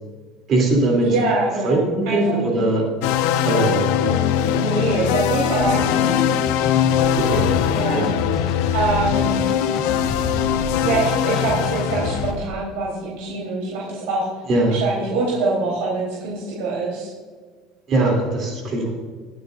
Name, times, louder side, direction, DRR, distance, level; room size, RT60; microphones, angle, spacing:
voice 1, 0.5-1.1 1.6-2.9 3.4-3.9 7.1-7.5 7.9-8.1 14.5-14.8 17.9-19.0, right 2 dB, 30° right, 0 dB, 3.1 m, -20 dB
voice 2, 1.0-2.4 4.0-4.2 4.5-6.2 7.7-8.1 8.7-9.3 10.8-14.3 14.7-17.1, right 3 dB, 85° right, -5 dB, 3.9 m, -24 dB
sound 1, 3.0-12.3, left 10 dB, 85° left, 0.8 m, -21 dB
sound 2, 5.6-12.5, left 3 dB, 30° left, 1.4 m, -29 dB
22.0 x 9.4 x 2.6 m, 1.5 s
cardioid pair, 180°, 0 cm